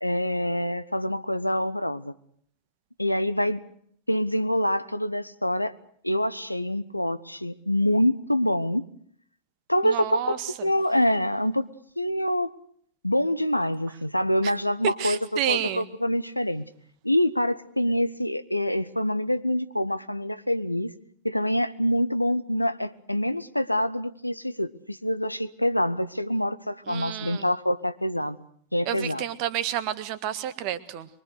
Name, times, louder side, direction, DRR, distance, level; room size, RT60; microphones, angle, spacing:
voice 1, 0.0-2.1 3.0-3.6 4.1-5.7 6.0-8.9 9.7-11.7 12.0-12.5 13.0-16.7 17.0-20.9 21.2-28.4 28.7-29.2, equal, 90° left, 14 dB, 0.9 m, -26 dB
voice 2, 9.8-10.4 15.0-15.8 26.9-27.4 28.9-31.1, right 11 dB, 45° right, 12 dB, 1.6 m, -30 dB
24.0 x 23.0 x 6.6 m, 0.64 s
figure-of-eight pair, 90°, 0 cm